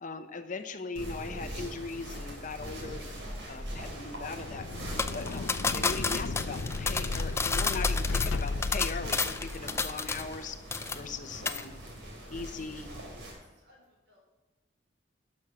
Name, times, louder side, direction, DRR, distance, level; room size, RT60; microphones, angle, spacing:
voice 1, 0.0-3.1 3.5-4.7 5.1-10.6 10.9-11.7 12.3-12.9, left 4 dB, 45° left, 8 dB, 0.8 m, -39 dB
sound 1, 0.9-13.3, equal, 90° right, 3.6 m, -42 dB
sound 2, 4.2-9.9, left 3 dB, 75° left, 0.5 m, -34 dB
sound 3, 5.0-10.4 10.7-11.2 11.5-11.6, left 4 dB, 15° left, 0.4 m, -31 dB
voice 2, 5.1-5.5 11.4-11.7 12.1-12.3 12.7-14.2, left 1 dB, 70° right, -1 dB, 4.1 m, -60 dB
12.0 x 6.4 x 5.7 m, 1.2 s
head